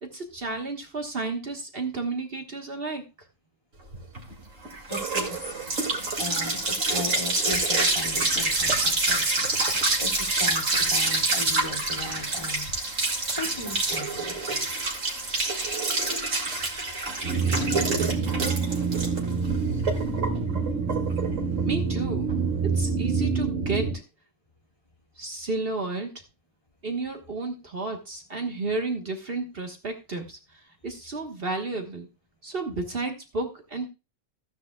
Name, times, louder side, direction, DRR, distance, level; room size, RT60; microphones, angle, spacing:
voice 1, 0.0-3.0 17.5-18.5 21.6-22.3 22.6-24.0 25.2-26.1 26.8-32.1 32.4-33.9, right 3 dB, 50° right, 4 dB, 1.6 m, -32 dB
sound 1, 3.9-23.0, right 2 dB, 85° right, 2.7 m, -27 dB
voice 2, 4.9-5.4 6.2-9.3 10.0-12.7 13.3-14.7, left 2 dB, 25° left, 0 dB, 2.5 m, -37 dB
sound 2, 17.2-23.9, right 5 dB, 70° right, 2.5 m, -27 dB
15.0 x 9.6 x 2.3 m, 0.27 s
omnidirectional pair, 1.3 m